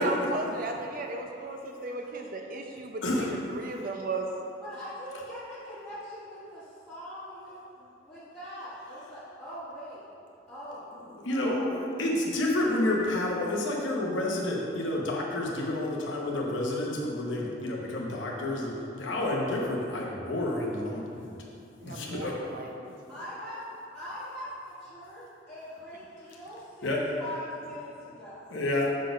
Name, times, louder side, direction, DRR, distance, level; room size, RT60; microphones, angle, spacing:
voice 1, 0.0-4.3 21.8-22.9, right 2 dB, 45° right, 2 dB, 0.6 m, -35 dB
voice 2, 3.0-3.3 11.2-21.0 21.8-22.3 26.8-27.0 28.5-28.9, left 1 dB, 75° left, -2 dB, 1.0 m, -29 dB
voice 3, 4.6-10.1 10.5-10.9 11.3-11.8 23.1-28.5, equal, 10° left, -15 dB, 1.4 m, -42 dB
6.4 x 4.1 x 5.2 m, 2.7 s
head